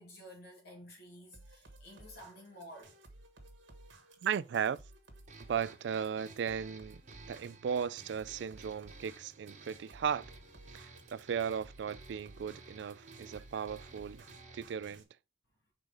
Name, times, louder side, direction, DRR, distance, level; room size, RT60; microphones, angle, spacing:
voice 1, 0.0-2.9, equal, 55° left, 2.4 m, -52 dB
sound 1, 1.3-15.0, right 2 dB, 85° right, 1.2 m, -57 dB
voice 2, 4.2-4.8 5.4-7.0 7.3-10.3 10.7-14.2 14.5-15.0, right 7 dB, 65° right, 0.3 m, -36 dB
sound 2, 5.3-14.9, right 3 dB, 40° right, 1.0 m, -55 dB
4.8 x 3.9 x 5.1 m
head